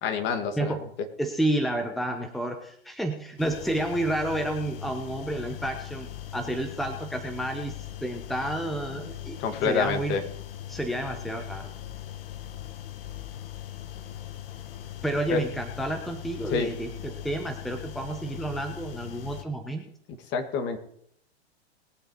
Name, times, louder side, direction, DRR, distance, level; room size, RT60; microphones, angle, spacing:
voice 1, 0.0-0.8 9.4-10.2 15.3-15.4 16.5-16.7 20.3-20.8, left 5 dB, 35° left, 8 dB, 2.0 m, -27 dB
voice 2, 1.2-7.7 8.0-10.2 10.7-11.7 15.0-19.8, right 1 dB, ahead, 5 dB, 1.2 m, -30 dB
sound 1, 3.4-19.4, left 11 dB, 60° left, 1.5 m, -40 dB
20.5 x 7.9 x 4.8 m, 0.69 s
hypercardioid pair, 120°, 32 cm